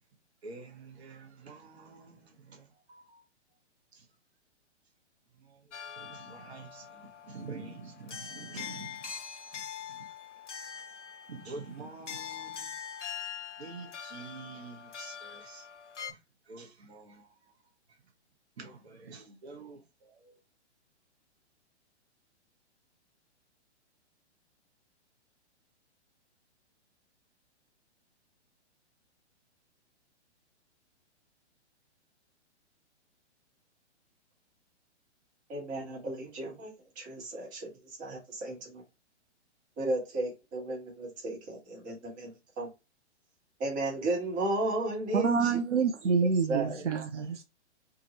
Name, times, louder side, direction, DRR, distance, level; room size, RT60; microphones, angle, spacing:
voice 1, 0.4-3.3 3.9-4.1 5.4-9.2 9.5-10.1 11.3-12.7 13.6-15.7 16.1-16.2 16.5-17.3 18.6-20.4, right 4 dB, 65° right, 1.0 m, -47 dB
sound 1, 5.7-16.1, left 8 dB, 85° left, 0.6 m, -43 dB
voice 2, 35.5-37.7 38.0-38.8 39.8-42.3 42.6-42.7 43.6-45.6 46.0-46.2 46.5-46.8, right 2 dB, 25° right, 1.3 m, -34 dB
voice 3, 45.1-47.4, right 5 dB, 85° right, 0.5 m, -27 dB
2.7 x 2.4 x 2.9 m
figure-of-eight pair, 120°, 35 cm